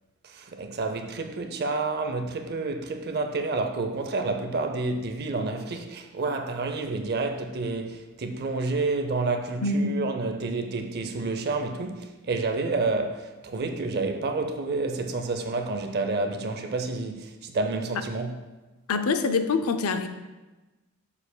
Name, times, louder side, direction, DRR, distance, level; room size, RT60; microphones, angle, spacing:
voice 1, 0.2-18.4, right 3 dB, 45° right, 0.5 m, -29 dB
voice 2, 9.6-9.9 18.9-20.1, left 4 dB, 75° left, 0.5 m, -25 dB
7.1 x 6.8 x 2.2 m
head